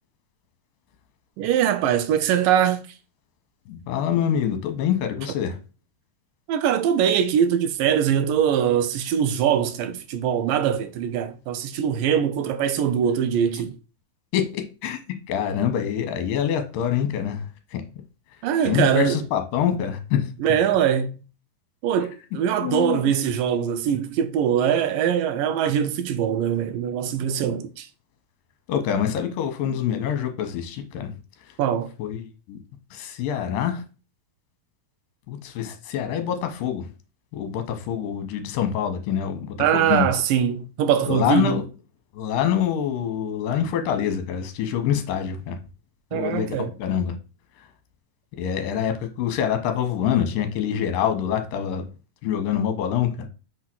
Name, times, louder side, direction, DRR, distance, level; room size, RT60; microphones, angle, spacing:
voice 1, 1.4-2.8 6.5-13.7 18.4-19.2 20.4-21.1 21.8-27.9 31.6-31.9 39.6-41.6 46.1-46.7, right 9 dB, 80° right, 2.1 m, -22 dB
voice 2, 3.7-5.6 14.3-15.0 15.3-17.8 18.6-20.3 22.6-23.1 28.7-31.1 32.0-32.6 32.9-33.8 35.3-36.9 37.3-40.1 41.1-41.6 42.1-45.6 46.1-47.2 47.6-47.7 48.4-51.9 52.2-53.3, left 9 dB, 70° left, 2.6 m, -25 dB
6.3 x 3.7 x 6.0 m
omnidirectional pair, 4.3 m